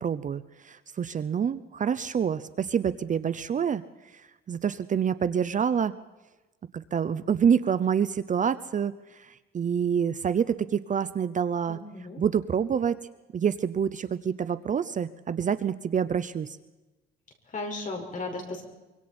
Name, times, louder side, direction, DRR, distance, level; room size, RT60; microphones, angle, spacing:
voice 1, 0.0-3.8 4.1-4.2 4.5-5.9 6.7-11.8 12.2-13.0 13.3-16.6, right 7 dB, 35° right, 14 dB, 0.7 m, -27 dB
voice 2, 11.7-12.2 17.5-18.6, left 2 dB, 40° left, 2 dB, 5.3 m, -35 dB
24.5 x 24.0 x 4.4 m, 1.1 s
cardioid pair, 120°, 21 cm